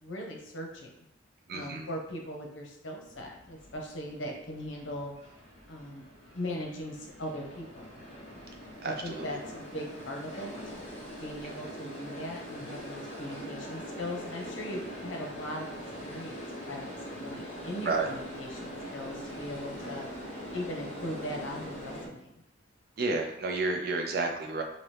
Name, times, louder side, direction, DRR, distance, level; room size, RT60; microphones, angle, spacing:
voice 1, 0.0-1.1 1.5-5.1 5.7-6.0 6.3-7.8 8.8-10.5 11.2-15.7 16.0-16.4 16.7-20.1 20.5-22.4, left 1 dB, 85° left, 0 dB, 0.8 m, -39 dB
voice 2, 1.5-1.9 8.8-9.3 17.8-18.1 23.0-24.6, right 3 dB, 55° right, 3 dB, 0.5 m, -31 dB
sound 1, 3.0-22.1, equal, 35° left, 0.9 m, -42 dB
2.9 x 2.8 x 3.2 m, 0.85 s
head